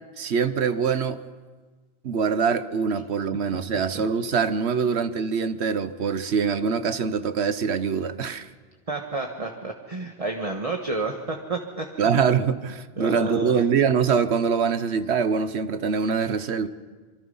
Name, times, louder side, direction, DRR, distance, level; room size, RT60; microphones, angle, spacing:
voice 1, 0.2-1.2 2.0-8.5 12.0-16.7, right 6 dB, 90° right, 12 dB, 1.3 m, -24 dB
voice 2, 8.9-12.0 13.0-13.6, right 3 dB, 35° right, 1 dB, 1.5 m, -30 dB
26.0 x 24.0 x 5.5 m, 1.4 s
omnidirectional pair, 1.1 m